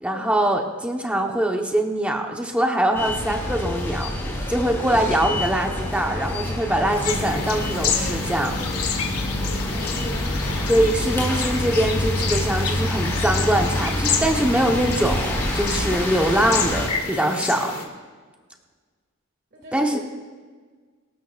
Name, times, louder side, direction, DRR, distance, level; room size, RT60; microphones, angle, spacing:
voice 1, 0.0-4.1 4.5-8.6 10.7-17.7 19.7-20.0, right 1 dB, 5° right, 1 dB, 1.0 m, -23 dB
sound 1, 2.9-16.9, left 1 dB, 10° left, 4.1 m, -27 dB
sound 2, 7.0-17.8, left 6 dB, 80° left, 2.3 m, -30 dB
voice 2, 9.7-10.5 19.5-20.0, equal, 45° right, -1 dB, 2.1 m, -41 dB
24.5 x 13.5 x 2.5 m, 1.5 s
head